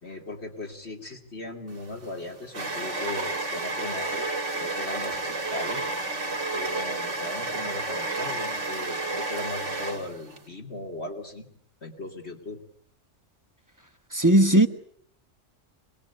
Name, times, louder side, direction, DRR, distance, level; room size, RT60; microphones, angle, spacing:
voice 1, 0.0-4.3 4.5-5.9 6.5-11.5 11.8-12.6, left 2 dB, 60° left, 3.1 m, -38 dB
sound 1, 1.7-10.4, right 2 dB, 75° right, 2.2 m, -31 dB
voice 2, 14.1-14.7, right 1 dB, 15° right, 1.1 m, -17 dB
26.0 x 20.5 x 8.3 m
omnidirectional pair, 1.3 m